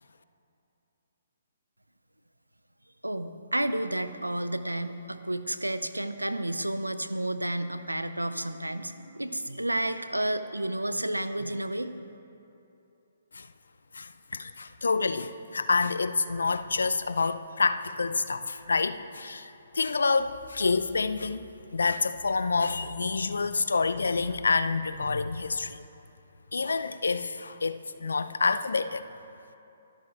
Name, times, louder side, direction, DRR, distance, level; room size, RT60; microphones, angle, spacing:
voice 1, 3.0-11.9, right 1 dB, 85° right, 11 dB, 0.6 m, -31 dB
voice 2, 13.9-21.4 21.7-25.8 26.5-29.1, left 4 dB, 70° left, 12 dB, 0.6 m, -28 dB
23.5 x 12.5 x 2.5 m, 2.8 s
figure-of-eight pair, 130°, 0 cm